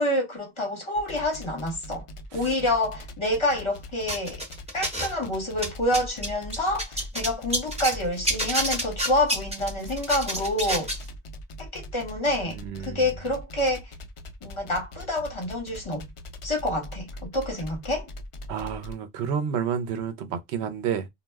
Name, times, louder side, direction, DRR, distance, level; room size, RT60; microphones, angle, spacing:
voice 1, 0.0-2.0 2.3-4.4 4.7-10.9 11.6-12.6 12.8-13.9 14.4-16.1 16.4-18.1, left 1 dB, 30° left, 1.0 m, -27 dB
sound 1, 1.0-18.9, left 1 dB, 60° left, 0.3 m, -40 dB
sound 2, 4.1-5.2 5.5-8.0 8.3-11.0, equal, 5° right, 0.9 m, -28 dB
voice 2, 12.5-13.1 18.5-21.1, right 7 dB, 80° right, 0.9 m, -30 dB
2.3 x 2.1 x 3.3 m
omnidirectional pair, 1.1 m